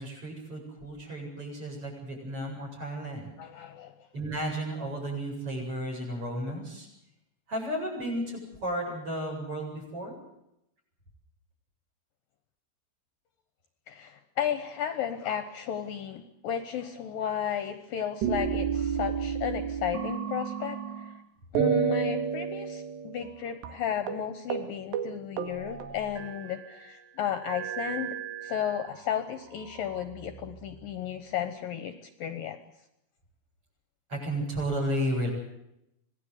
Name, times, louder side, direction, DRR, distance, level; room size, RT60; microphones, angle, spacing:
voice 1, 0.0-3.3 4.1-6.9 7.5-10.1 34.1-35.3, right 1 dB, 30° right, 2 dB, 9.0 m, -33 dB
voice 2, 3.4-3.9 13.9-21.1 21.5-28.2 28.4-31.9 32.2-32.6, left 9 dB, 65° left, 9 dB, 2.6 m, -34 dB
sound 1, 18.2-21.2 21.6-23.4 23.6-23.8 24.1-24.2 24.5-24.7 24.9-26.7 27.4-29.0 29.7-30.6, right 7 dB, 85° right, 4.1 m, -32 dB
26.0 x 18.0 x 8.2 m, 0.83 s
omnidirectional pair, 4.8 m